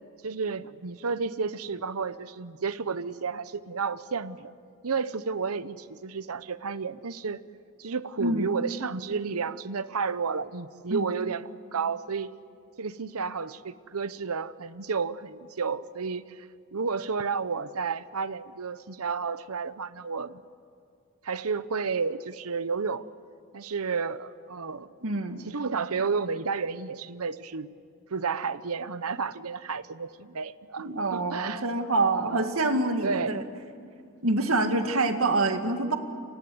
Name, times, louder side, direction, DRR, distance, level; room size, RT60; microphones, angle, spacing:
voice 1, 0.2-4.5 4.8-7.4 7.8-12.3 12.8-20.4 21.2-23.0 23.5-24.9 25.5-27.7 28.1-31.6 32.1-32.5 33.0-33.4, right 5 dB, 90° right, 15 dB, 0.9 m, -31 dB
voice 2, 8.2-8.5 10.9-11.1 25.0-25.4 30.8-33.4 34.2-36.0, right 2 dB, 75° right, 6 dB, 2.1 m, -26 dB
29.5 x 24.0 x 8.0 m, 2.5 s
head